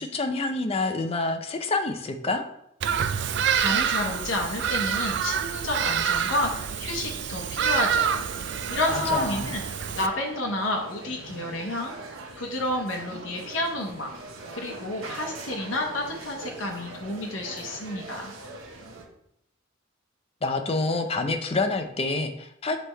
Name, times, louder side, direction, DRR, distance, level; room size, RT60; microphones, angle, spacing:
voice 1, 0.0-2.4 8.9-9.4 20.4-22.8, left 3 dB, 30° left, 6 dB, 0.5 m, -27 dB
Bird vocalization bird call bird song, 2.8-10.1, right 8 dB, 60° right, 0.4 m, -27 dB
voice 2, 3.5-8.1 8.7-9.6 9.9-11.9 12.4-14.1 14.5-18.3, left 1 dB, 70° left, 0 dB, 0.9 m, -30 dB
sound 1, 8.1-19.0, right 2 dB, 80° right, 1.0 m, -41 dB
6.5 x 3.4 x 4.3 m, 0.76 s
head